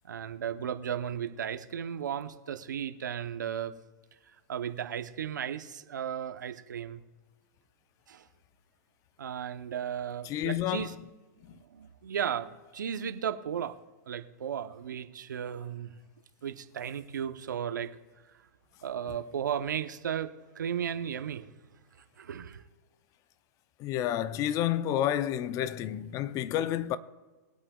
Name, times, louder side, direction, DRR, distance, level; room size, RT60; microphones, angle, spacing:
voice 1, 0.0-3.7 4.3-7.0 8.1-8.3 9.2-10.9 11.5-13.7 14.1-15.9 16.4-18.0 18.8-21.6 22.2-22.6, right 8 dB, 85° right, 0.8 m, -35 dB
voice 2, 10.3-11.0 23.8-27.0, left 11 dB, 35° left, 0.5 m, -30 dB
22.0 x 8.6 x 2.4 m
hypercardioid pair, 120°, 10 cm